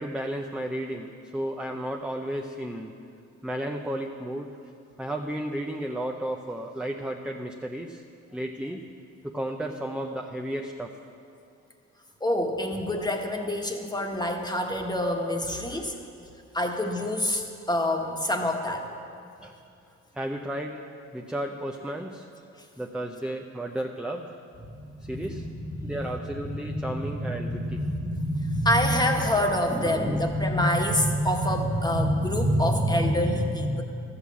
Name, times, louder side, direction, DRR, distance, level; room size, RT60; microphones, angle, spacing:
voice 1, 0.0-2.9 3.4-4.5 5.0-8.0 8.3-8.8 9.2-10.9 12.7-12.8 15.7-16.1 19.4-19.5 20.1-20.8 21.1-22.3 22.8-24.4 25.1-25.4 25.8-27.8 29.7-30.3, right 1 dB, 5° right, 2 dB, 0.7 m, -33 dB
voice 2, 12.2-16.0 16.5-18.9 25.1-33.8, equal, 15° left, 2 dB, 1.5 m, -26 dB
13.5 x 8.7 x 7.1 m, 2.5 s
cardioid pair, 90°, 30 cm